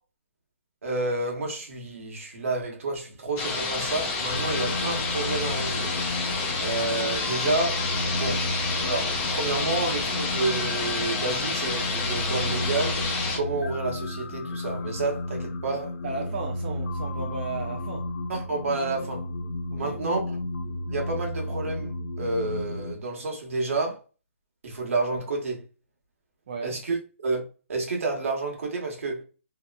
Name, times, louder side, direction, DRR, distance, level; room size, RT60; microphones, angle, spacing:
voice 1, 0.8-5.9 6.6-7.9 8.2-8.5 8.8-13.0 13.3-16.0 18.3-19.3 19.8-20.4 20.9-24.0 24.6-25.6 26.6-27.4 27.7-29.2, right 3 dB, 70° right, 1.0 m, -30 dB
sound 1, 3.4-13.4, left 3 dB, 15° left, 0.4 m, -29 dB
sound 2, 4.3-22.9, left 1 dB, 90° left, 0.4 m, -33 dB
voice 2, 16.0-18.1 19.7-20.0 26.5-26.8, right 4 dB, 40° right, 0.5 m, -35 dB
2.8 x 2.1 x 2.2 m
hypercardioid pair, 170°, 7 cm